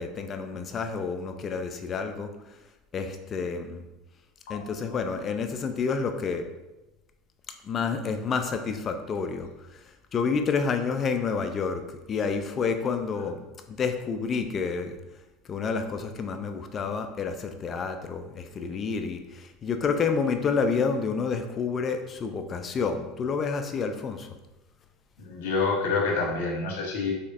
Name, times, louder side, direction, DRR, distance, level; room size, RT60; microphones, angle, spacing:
voice 1, 0.0-2.3 2.9-3.9 4.5-6.5 7.6-9.8 10.1-13.4 13.8-15.0 15.5-24.3, left 5 dB, 35° left, 6 dB, 0.4 m, -29 dB
voice 2, 25.2-27.1, left 4 dB, 85° left, -1 dB, 1.1 m, -27 dB
4.2 x 2.9 x 2.5 m, 1.0 s
supercardioid pair, 120°, 0 cm